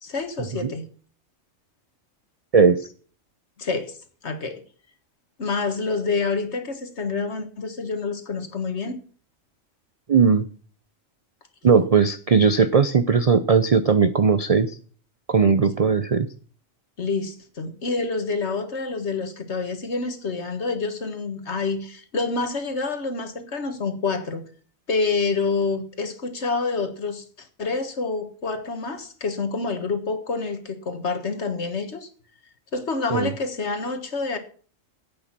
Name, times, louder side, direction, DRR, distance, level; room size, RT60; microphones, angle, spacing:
voice 1, 0.0-0.8 3.6-4.0 4.2-4.6 5.4-9.0 17.0-24.4 24.9-32.1 32.7-34.4, left 4 dB, 55° left, 8 dB, 1.8 m, -27 dB
voice 2, 2.5-2.9 10.1-10.5 11.6-14.7 15.3-16.3 33.1-33.3, right 5 dB, 45° right, 12 dB, 0.4 m, -18 dB
10.5 x 8.7 x 7.3 m, 0.43 s
omnidirectional pair, 1.4 m